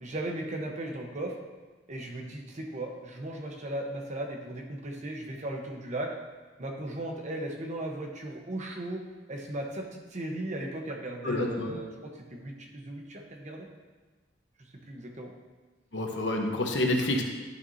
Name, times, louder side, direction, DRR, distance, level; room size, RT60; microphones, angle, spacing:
voice 1, 0.0-1.3 1.9-6.1 6.6-9.0 9.3-11.9 12.3-13.7 14.9-15.3, right 1 dB, 40° right, 2 dB, 1.0 m, -36 dB
voice 2, 11.2-11.8 15.9-17.2, left 1 dB, 80° left, 2 dB, 1.0 m, -28 dB
11.0 x 6.1 x 2.7 m, 1.3 s
head